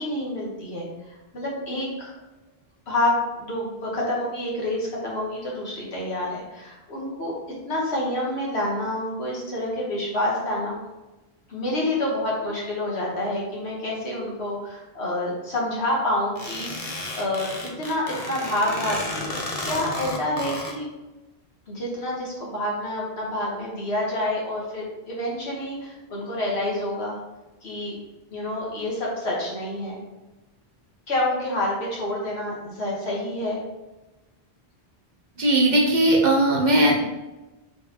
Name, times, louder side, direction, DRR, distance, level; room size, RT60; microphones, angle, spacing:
voice 1, 0.0-2.1 2.9-7.3 7.6-10.8 11.5-17.5 17.8-19.2 19.6-20.9 21.7-27.2 27.6-28.0 28.3-30.0 31.1-33.6, left 1 dB, 80° left, -4 dB, 1.4 m, -28 dB
sound 1, 16.4-20.7, left 2 dB, 40° left, 0.6 m, -32 dB
voice 2, 35.4-37.0, right 1 dB, 50° right, -2 dB, 0.7 m, -18 dB
3.7 x 3.4 x 2.8 m, 1.1 s
omnidirectional pair, 1.1 m